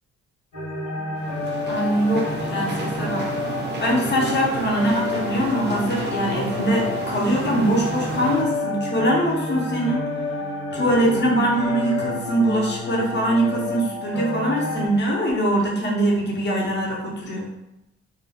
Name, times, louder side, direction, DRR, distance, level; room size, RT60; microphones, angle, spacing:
sound 1, 0.5-14.9, left 2 dB, 80° left, 1.1 m, -29 dB
sound 2, 1.2-8.4, right 2 dB, 35° right, 0.5 m, -32 dB
voice 1, 1.7-3.2 3.8-10.0 10.7-17.5, right 1 dB, 35° left, -2 dB, 0.8 m, -22 dB
2.2 x 2.1 x 3.4 m, 0.85 s
cardioid pair, 90°, 30 cm